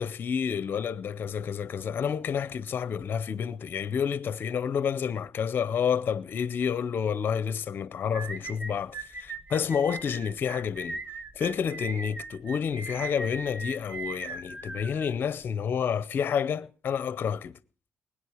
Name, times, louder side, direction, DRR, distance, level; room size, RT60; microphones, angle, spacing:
voice 1, 0.0-11.0 11.4-17.6, left 7 dB, 45° left, 0.6 m, -29 dB
sound 1, 8.1-15.5, right 3 dB, 25° right, 1.0 m, -39 dB
20.5 x 9.8 x 4.9 m
cardioid pair, 135°, 5 cm